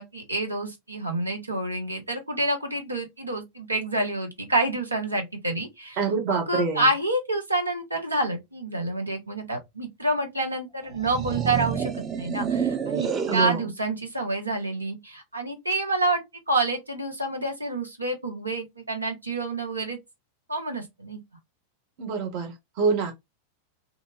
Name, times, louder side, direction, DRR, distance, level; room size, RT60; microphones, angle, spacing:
voice 1, 0.0-6.0 6.3-20.0 20.5-21.2, right 2 dB, 85° right, 0.8 m, -28 dB
voice 2, 6.0-6.9 13.3-13.7 22.0-23.1, right 5 dB, 45° right, 0.9 m, -26 dB
sound 1, 10.9-13.6, right 7 dB, 25° right, 0.6 m, -28 dB
2.5 x 2.4 x 2.9 m
figure-of-eight pair, 90°, 0 cm